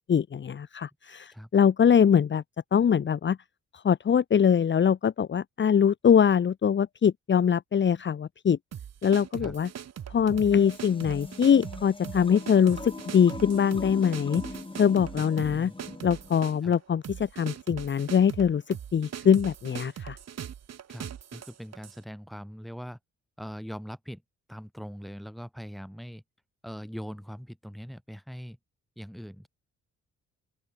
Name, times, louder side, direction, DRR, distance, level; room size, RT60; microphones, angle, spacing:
voice 1, 0.0-2.4 2.7-3.4 3.7-8.6 9.0-9.7 10.1-14.4 14.8-15.7 16.0-20.2, left 7 dB, 40° left, 1.0 m, -23 dB
sound 1, 8.7-22.0, right 9 dB, 60° right, 3.9 m, -41 dB
sound 2, 10.3-16.6, left 2 dB, 15° left, 3.9 m, -41 dB
voice 2, 20.9-23.0 23.4-24.2 24.5-26.2 26.6-28.6 29.0-29.5, equal, ahead, 7.5 m, -41 dB
open air
cardioid pair, 90°, 30 cm